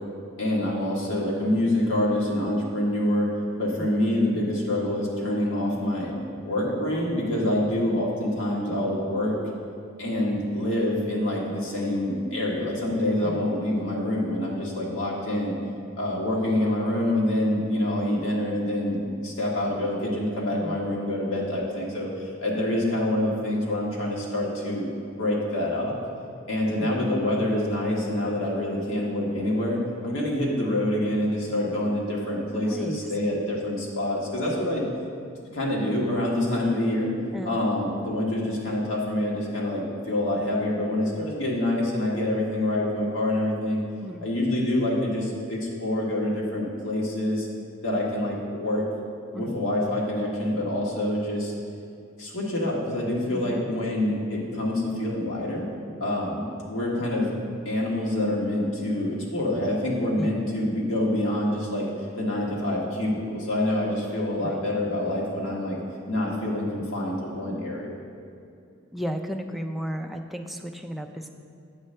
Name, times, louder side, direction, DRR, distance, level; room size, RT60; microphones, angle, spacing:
voice 1, 0.4-3.3 3.6-6.1 6.4-9.3 10.0-15.5 16.0-22.1 22.4-24.8 25.2-25.9 26.5-34.9 35.5-37.1 37.4-43.8 44.2-47.5 47.8-48.8 49.3-51.5 52.2-55.7 56.0-57.3 57.6-61.9 62.2-65.8 66.1-67.9, left 1 dB, 80° left, -4 dB, 1.5 m, -26 dB
voice 2, 32.6-33.0 37.3-37.6 44.0-44.3 49.3-49.6 53.3-53.7 60.2-60.3 64.4-64.6 68.9-71.3, equal, ahead, 3 dB, 0.3 m, -34 dB
8.2 x 3.3 x 6.4 m, 2.5 s
head